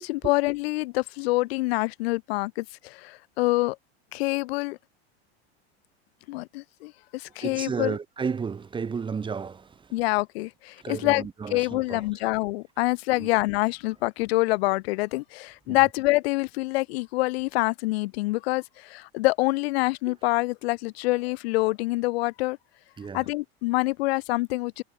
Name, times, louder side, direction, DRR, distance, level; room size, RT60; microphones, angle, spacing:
voice 1, 0.0-3.8 4.1-4.8 6.3-7.9 9.9-22.6 23.1-24.8, left 21 dB, 75° left, 0.7 m, -26 dB
voice 2, 7.4-9.9 10.8-12.1 13.1-13.3 15.7-15.8 20.1-20.2 23.0-23.3, right 5 dB, 15° right, 1.2 m, -33 dB
supercardioid pair, 130°, 32 cm